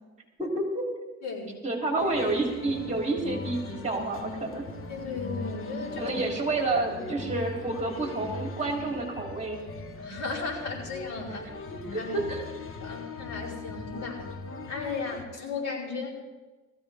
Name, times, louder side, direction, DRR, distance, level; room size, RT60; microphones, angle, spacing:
voice 1, 0.4-0.8 1.6-4.6 6.0-9.6 11.7-12.4, right 2 dB, 25° right, 0 dB, 3.2 m, -29 dB
voice 2, 1.2-1.6 4.9-6.2 10.0-11.4 12.0-12.2 12.8-14.2 14.7-16.2, left 4 dB, 60° left, -4 dB, 4.9 m, -35 dB
sound 1, 2.0-15.2, left 3 dB, 45° left, 1.3 m, -40 dB
20.0 x 15.0 x 3.5 m, 1.2 s
cardioid pair, 90°, 30 cm